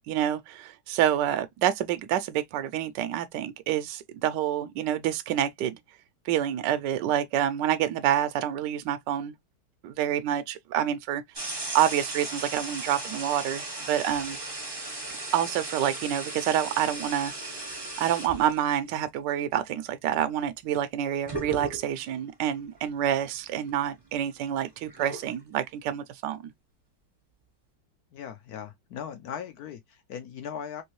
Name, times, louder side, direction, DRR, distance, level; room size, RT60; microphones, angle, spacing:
voice 1, 0.1-5.8 6.2-9.3 9.8-14.4 15.3-17.6 18.0-26.4, right 10 dB, 75° right, 1.0 m, -28 dB
sound 1, 11.3-18.7 20.8-20.9 21.3-22.1 22.8-22.9 23.3-25.3, right 2 dB, 30° right, 0.4 m, -36 dB
voice 2, 28.1-30.8, left 8 dB, 75° left, 0.8 m, -39 dB
3.5 x 3.0 x 3.0 m
omnidirectional pair, 2.3 m